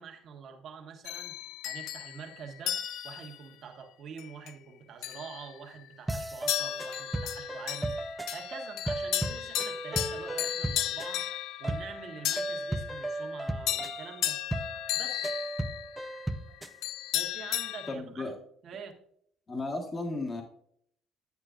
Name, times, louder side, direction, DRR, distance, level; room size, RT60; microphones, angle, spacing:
voice 1, 0.0-1.4 1.6-7.9 8.3-11.2 11.6-14.4 14.9-15.3 17.1-18.3 18.6-18.9, right 6 dB, 55° right, 3 dB, 1.5 m, -45 dB
sound 1, 1.0-3.4 4.2-4.5 5.0-5.9 6.5-17.9, left 13 dB, 80° left, 0.4 m, -35 dB
sound 2, 6.1-16.8, right 1 dB, 10° right, 0.6 m, -36 dB
voice 2, 17.9-18.3 19.5-20.4, left 2 dB, 30° left, 2 dB, 1.5 m, -34 dB
9.6 x 8.9 x 2.5 m, 0.66 s
cardioid pair, 100°, 0 cm